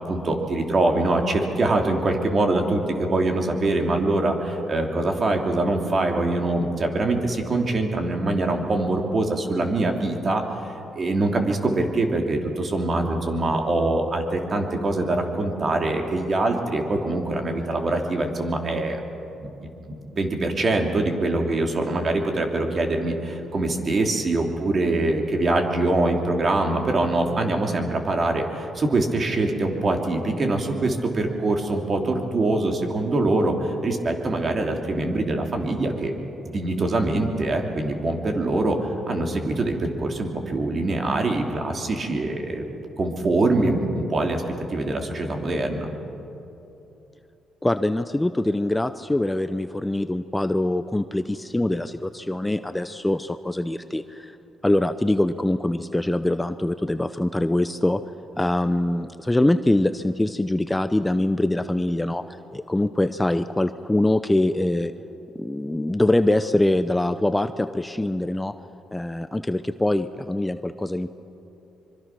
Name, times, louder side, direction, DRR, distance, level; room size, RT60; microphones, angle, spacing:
voice 1, 0.1-19.0 19.9-36.1 36.5-42.6 43.0-44.4 44.7-45.9, right 2 dB, 40° right, 3 dB, 3.0 m, -24 dB
voice 2, 47.6-54.4 54.6-58.0 58.4-62.2 62.5-64.9 65.3-68.5 68.9-71.1, left 1 dB, 10° left, 11 dB, 0.6 m, -23 dB
24.5 x 24.0 x 6.1 m, 2.9 s
cardioid pair, 90°, 0 cm